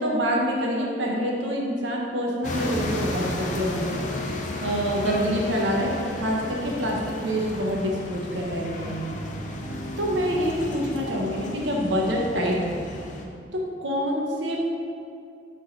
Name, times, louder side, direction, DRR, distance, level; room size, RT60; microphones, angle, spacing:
voice 1, 0.0-4.0 4.6-9.2 10.0-12.8 13.8-14.6, equal, 85° right, -2 dB, 1.0 m, -26 dB
sound 1, 2.4-13.3, left 1 dB, 40° left, 0.6 m, -34 dB
sound 2, 8.3-13.3, right 1 dB, 40° right, 0.9 m, -40 dB
6.5 x 3.9 x 4.0 m, 2.4 s
head